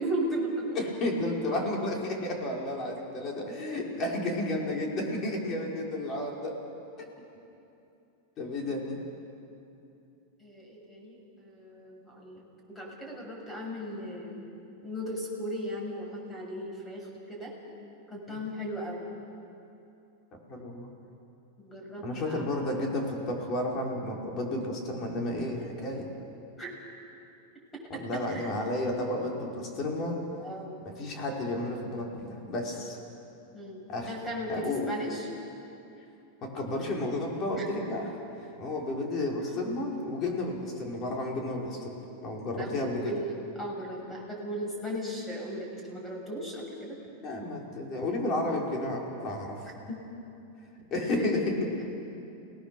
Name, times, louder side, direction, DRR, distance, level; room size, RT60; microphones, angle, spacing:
voice 1, 0.0-0.7 7.2-7.3 8.6-8.8 10.4-12.4 12.7-14.4 14.8-17.5 18.1-19.1 21.6-22.5 26.6-26.7 27.9-28.5 29.9-30.0 30.4-30.8 32.2-32.4 33.5-35.3 37.6-37.7 39.6-39.7 42.6-47.0 49.9-50.0 51.2-51.3, equal, 10° left, -1 dB, 6.7 m, -36 dB
voice 2, 0.7-6.6 7.0-7.1 8.4-9.0 18.3-18.4 20.5-20.9 22.0-26.1 27.9-30.2 30.8-33.0 33.9-34.1 34.5-34.9 36.4-38.1 38.4-43.1 47.2-49.6 50.9-51.8, left 1 dB, 35° left, -1 dB, 4.9 m, -32 dB
30.0 x 19.0 x 6.9 m, 2.7 s
supercardioid pair, 140°, 0 cm